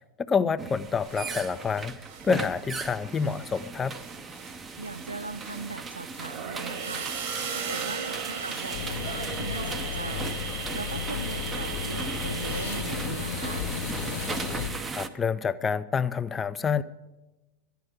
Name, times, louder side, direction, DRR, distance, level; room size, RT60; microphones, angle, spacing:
voice 1, 0.2-2.0 2.2-4.0 14.9-16.8, left 6 dB, 20° left, 14 dB, 0.5 m, -27 dB
sound 1, 0.6-15.1, right 4 dB, 20° right, 0.7 m, -37 dB
sound 2, 1.0-2.8 3.1-12.8, right 6 dB, 50° right, 1.5 m, -38 dB
voice 2, 4.8-7.1 7.5-10.4 10.7-13.7, right 3 dB, 80° right, 14 dB, 0.5 m, -39 dB
sound 3, 8.7-14.7, left 8 dB, 55° left, 1.4 m, -34 dB
12.0 x 9.3 x 6.2 m, 1.1 s
figure-of-eight pair, 90°, 0 cm